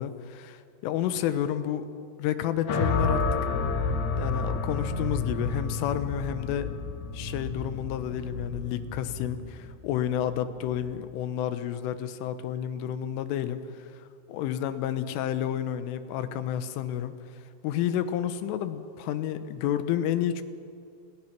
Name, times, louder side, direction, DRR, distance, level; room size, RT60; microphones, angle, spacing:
voice 1, 0.0-1.9 2.2-3.2 4.2-6.8 7.1-20.4, left 10 dB, 80° left, 11 dB, 3.6 m, -30 dB
sound 1, 2.7-10.9, left 4 dB, 55° left, 3.4 m, -30 dB
28.0 x 22.0 x 6.0 m, 2.4 s
omnidirectional pair, 5.7 m